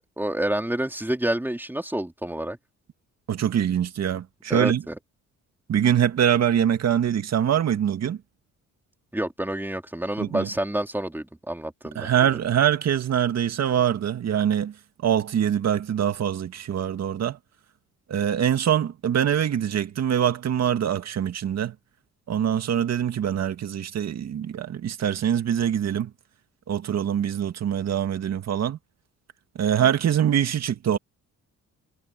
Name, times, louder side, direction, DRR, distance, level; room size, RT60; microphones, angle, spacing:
voice 1, 0.2-2.6 4.5-5.0 9.1-12.4, right 1 dB, 5° right, 3.5 m, -28 dB
voice 2, 3.3-4.8 5.7-8.2 10.2-10.5 12.0-14.7 15.0-17.4 18.1-21.7 22.3-26.1 26.7-28.8 29.6-31.0, right 9 dB, 60° right, 2.2 m, -24 dB
cardioid pair, 90°, 30 cm